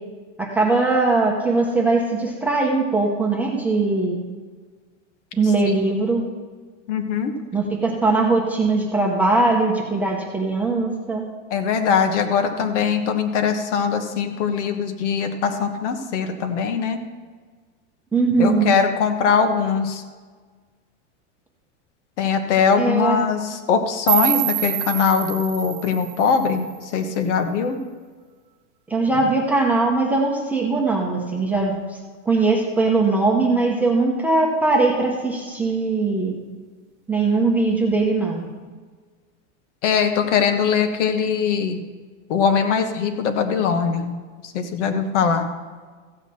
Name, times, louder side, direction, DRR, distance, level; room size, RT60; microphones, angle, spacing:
voice 1, 0.4-4.2 5.3-6.2 7.5-11.3 18.1-18.8 22.8-23.2 28.9-31.7 32.3-36.3 37.1-38.4, right 3 dB, 5° right, -2 dB, 0.8 m, -20 dB
voice 2, 5.4-5.8 6.0-6.1 6.9-7.3 11.5-17.0 18.4-20.0 22.2-27.8 39.8-41.8 42.3-44.1 44.4-45.5, left 6 dB, 70° left, 6 dB, 1.4 m, -21 dB
sound 1, 24.1-27.1, right 17 dB, 45° right, 0.5 m, -26 dB
15.0 x 8.1 x 4.3 m, 1.5 s
supercardioid pair, 170°, 36 cm